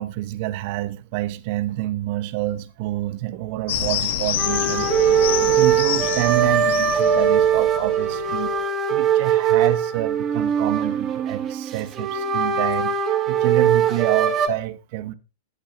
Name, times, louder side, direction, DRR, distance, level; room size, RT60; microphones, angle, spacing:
voice 1, 0.0-8.5 8.9-13.0 13.3-15.1, right 16 dB, 50° right, 1.0 m, -28 dB
sound 1, 3.7-8.5, left 10 dB, 60° left, 1.3 m, -28 dB
sound 2, 4.4-14.5, right 8 dB, 30° right, 2.1 m, -21 dB
14.5 x 10.0 x 2.6 m
hypercardioid pair, 100°, 0 cm